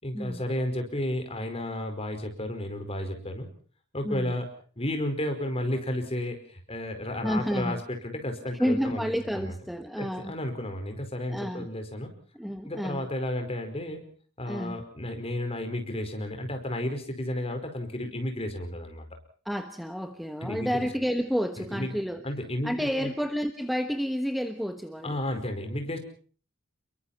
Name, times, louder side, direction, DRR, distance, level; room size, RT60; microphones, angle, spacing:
voice 1, 0.0-3.5 3.9-4.5 4.8-9.5 10.0-12.1 12.7-14.0 14.4-19.0 20.4-20.9 21.6-22.0 22.2-23.1 25.0-26.0, left 1 dB, 30° left, 6 dB, 4.9 m, -32 dB
voice 2, 7.2-7.8 8.6-10.3 11.3-11.7 12.3-13.1 14.4-14.8 19.4-22.3 22.6-25.2, equal, ahead, 8 dB, 1.2 m, -30 dB
29.5 x 22.5 x 4.3 m, 0.43 s
head